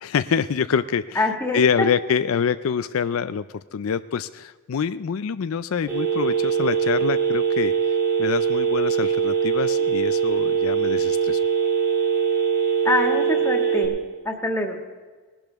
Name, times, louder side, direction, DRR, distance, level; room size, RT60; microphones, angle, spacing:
voice 1, 0.0-1.3 1.5-7.7 8.2-11.4, left 7 dB, 75° left, 13 dB, 0.4 m, -25 dB
voice 2, 1.2-1.9 12.8-14.0 14.3-14.8, left 2 dB, 10° left, 2 dB, 1.9 m, -24 dB
Telephone, 5.9-13.9, right 7 dB, 20° right, 3.4 m, -22 dB
19.5 x 12.0 x 3.5 m, 1.4 s
head